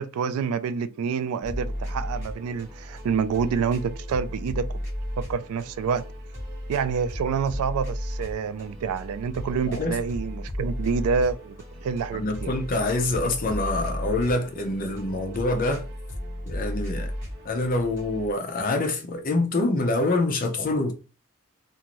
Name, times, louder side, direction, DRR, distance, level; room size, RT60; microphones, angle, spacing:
voice 1, 0.0-4.7 5.2-6.0 6.7-12.5, right 6 dB, 80° right, 0.3 m, -27 dB
sound 1, 1.4-18.3, equal, 30° right, 1.3 m, -35 dB
voice 2, 9.7-10.0 12.1-15.8 16.5-17.1 17.4-21.0, left 2 dB, 40° left, 0.6 m, -26 dB
2.6 x 2.5 x 3.0 m
head